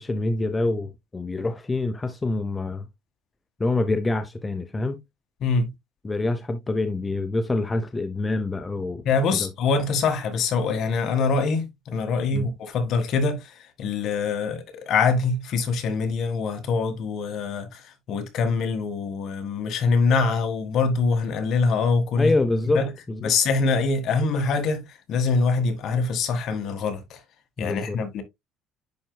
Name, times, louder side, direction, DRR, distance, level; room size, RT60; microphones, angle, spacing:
voice 1, 0.0-2.9 3.6-5.0 6.0-9.0 9.3-9.5 12.3-12.5 22.2-22.8 23.1-23.3 27.6-28.0, left 2 dB, 15° left, 0.8 m, -26 dB
voice 2, 5.4-5.7 9.1-17.8 18.1-22.3 22.8-22.9 23.2-27.2 27.6-28.2, left 4 dB, 55° left, 1.8 m, -24 dB
10.5 x 4.6 x 2.3 m
cardioid pair, 120°, 0 cm